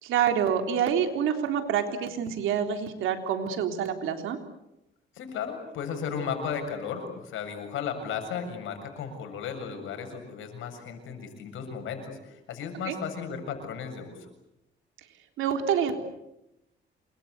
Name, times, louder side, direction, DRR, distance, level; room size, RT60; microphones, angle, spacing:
voice 1, 0.0-4.4 12.9-13.0 15.4-15.9, right 8 dB, 90° right, 5 dB, 3.6 m, -27 dB
voice 2, 5.1-14.2, left 6 dB, 85° left, 6 dB, 7.2 m, -35 dB
28.5 x 23.0 x 8.1 m, 0.89 s
cardioid pair, 90°, 20 cm